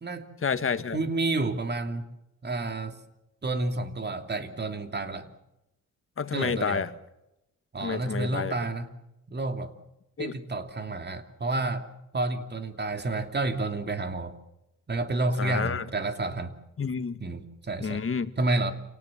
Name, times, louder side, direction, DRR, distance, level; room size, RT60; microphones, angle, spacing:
voice 1, 0.4-1.0 6.2-6.9 7.8-8.5 10.2-10.4 15.4-15.9 16.8-17.2 17.8-18.3, left 5 dB, 45° left, 10 dB, 1.7 m, -29 dB
voice 2, 0.9-2.1 2.4-3.0 3.4-5.3 6.3-6.8 7.7-8.9 9.3-9.7 10.2-11.9 12.1-14.3 14.9-16.5 17.2-18.0 18.4-18.7, right 2 dB, 35° right, 7 dB, 2.8 m, -30 dB
29.0 x 18.5 x 7.3 m, 0.89 s
wide cardioid pair, 110°, 30 cm